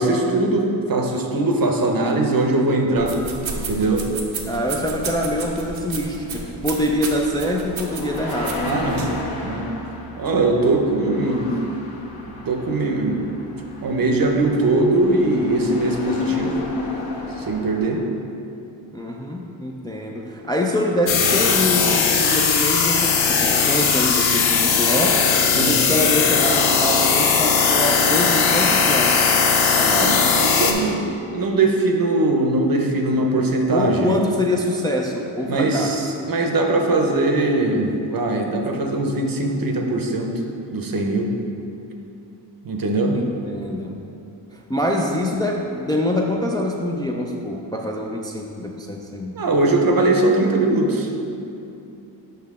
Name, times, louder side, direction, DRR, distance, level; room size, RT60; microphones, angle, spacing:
voice 1, 0.0-3.2 3.6-4.1 8.6-9.1 9.4-9.7 10.2-11.6 12.2-13.3 13.8-16.5 17.4-18.0 25.5-25.8 30.0-34.2 35.5-40.3 40.7-41.3 42.6-43.2 49.4-51.1, right 2 dB, 50° right, 3 dB, 0.8 m, -21 dB
sound 1, 3.0-9.2, right 5 dB, 85° right, 0.8 m, -33 dB
voice 2, 4.5-8.7 18.9-25.2 25.5-29.3 29.8-30.3 33.7-35.9 43.1-44.0 44.5-49.4, left 1 dB, 10° left, 0 dB, 0.4 m, -25 dB
sound 2, 5.0-18.0, left 3 dB, 50° left, 1.3 m, -33 dB
sound 3, 21.1-30.7, left 5 dB, 80° left, 0.7 m, -18 dB
5.7 x 5.5 x 3.6 m, 2.7 s
cardioid pair, 75°, 46 cm